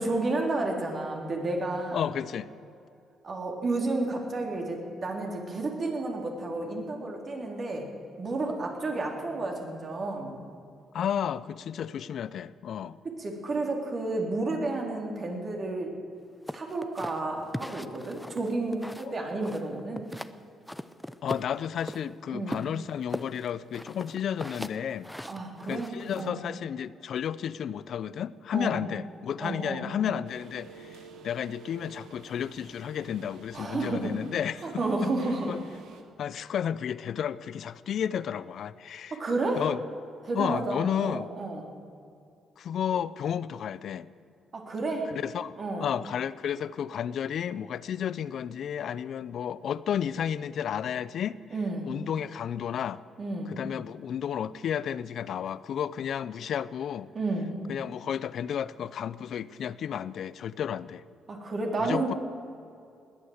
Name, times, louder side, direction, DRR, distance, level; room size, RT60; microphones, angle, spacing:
voice 1, 0.0-2.0 3.2-7.8 8.2-10.4 13.2-15.9 16.5-20.1 22.3-22.6 25.3-25.9 26.2-26.4 28.5-28.9 29.4-29.9 33.5-34.1 34.6-35.5 39.1-39.6 40.2-41.7 44.5-45.1 45.6-45.9 51.5-51.9 53.2-53.5 57.1-57.5 61.3-62.1, right 2 dB, 45° right, 1 dB, 3.3 m, -31 dB
voice 2, 1.9-2.5 10.9-13.0 19.0-19.1 21.2-25.1 25.7-31.0 31.2-34.8 35.5-35.6 36.2-39.2 39.5-39.8 40.3-41.3 42.6-44.1 45.1-51.4 51.9-53.0 53.5-57.1 57.7-61.0 61.8-62.1, left 9 dB, 65° left, 18 dB, 0.5 m, -32 dB
sound 1, 16.5-19.1 19.4-20.3 20.7-22.0 22.5-26.3, left 1 dB, 5° left, 0.7 m, -39 dB
sound 2, 30.2-36.0, right 5 dB, 80° right, 1.5 m, -50 dB
20.0 x 8.8 x 7.9 m, 2.5 s
cardioid pair, 85°, 0 cm